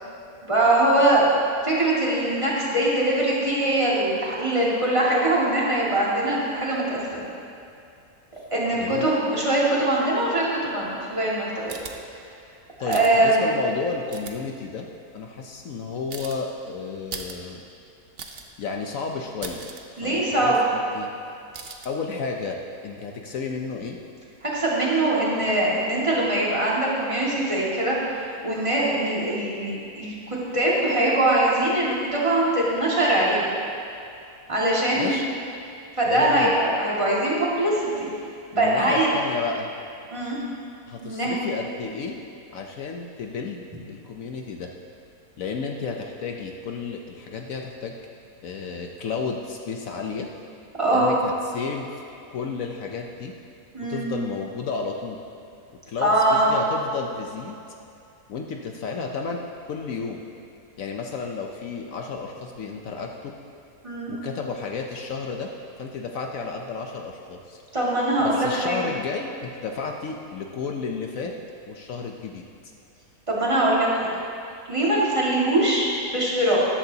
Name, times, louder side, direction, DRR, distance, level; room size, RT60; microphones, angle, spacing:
voice 1, 0.4-1.3 1.6-7.3 8.5-11.8 12.8-13.4 20.0-20.6 24.4-30.1 30.5-33.5 34.5-35.2 36.0-38.1 38.6-39.1 40.1-40.4 41.0-41.4 50.8-51.1 53.7-54.1 56.0-56.5 63.8-64.1 67.7-68.8 73.3-74.1 74.7-76.6, right 1 dB, 20° right, -6 dB, 2.1 m, -22 dB
voice 2, 8.7-9.1 12.8-14.8 15.1-17.6 18.6-19.7 20.0-21.1 21.8-24.0 34.9-35.3 36.1-36.5 38.5-39.7 40.9-42.2 42.5-44.7 45.4-47.9 48.4-50.3 50.9-51.9 52.3-53.3 53.9-55.2 55.9-57.6 58.3-60.2 60.8-63.3 64.1-65.5 65.8-67.6 68.2-71.3 71.7-72.5, left 5 dB, 65° left, 2 dB, 1.0 m, -32 dB
sound 1, 11.7-11.9 12.9-13.1 14.1-14.3 16.1-16.4 17.1-17.4 17.7-17.8 18.2-18.5 18.9-19.0 19.3-19.8 21.5-21.9, right 5 dB, 50° right, 0.8 m, -37 dB
13.5 x 12.0 x 2.8 m, 2.6 s
omnidirectional pair, 1.7 m